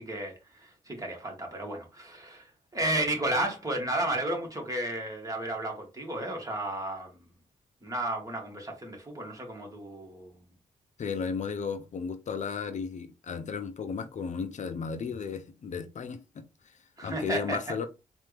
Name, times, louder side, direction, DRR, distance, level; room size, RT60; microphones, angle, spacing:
voice 1, 0.0-2.5 2.7-7.3 7.8-10.3 17.0-17.7, right 1 dB, 25° right, 1.9 m, -33 dB
voice 2, 11.0-17.9, left 5 dB, 60° left, 0.6 m, -35 dB
4.2 x 2.6 x 3.4 m
cardioid pair, 70°, 14 cm